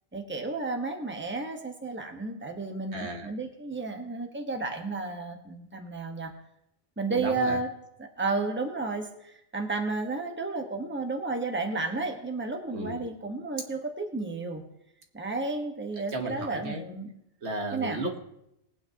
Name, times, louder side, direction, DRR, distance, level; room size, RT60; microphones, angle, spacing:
voice 1, 0.1-6.3 7.0-7.7 8.0-14.6 15.1-17.1 17.7-18.0, right 3 dB, 10° right, 4 dB, 1.2 m, -32 dB
voice 2, 2.9-3.3 7.1-7.6 12.7-13.1 16.1-16.8 17.4-18.2, right 2 dB, 70° right, 3 dB, 1.6 m, -34 dB
20.5 x 9.1 x 2.9 m, 0.80 s
omnidirectional pair, 1.2 m